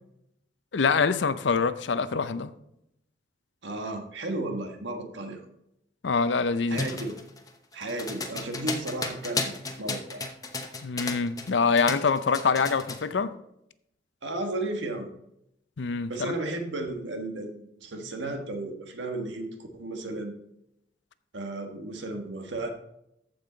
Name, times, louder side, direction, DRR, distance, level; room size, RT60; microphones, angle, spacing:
voice 1, 0.7-2.5 6.0-6.8 10.8-13.3 15.8-16.3, left 5 dB, 75° left, 0.6 m, -25 dB
voice 2, 3.6-5.4 6.7-7.1 7.7-10.2 14.2-15.1 16.1-20.4 21.3-22.7, right 2 dB, 80° right, 1.5 m, -34 dB
sound 1, 6.7-11.5 11.8-13.0, left 3 dB, 20° left, 0.8 m, -33 dB
14.0 x 5.5 x 3.9 m
head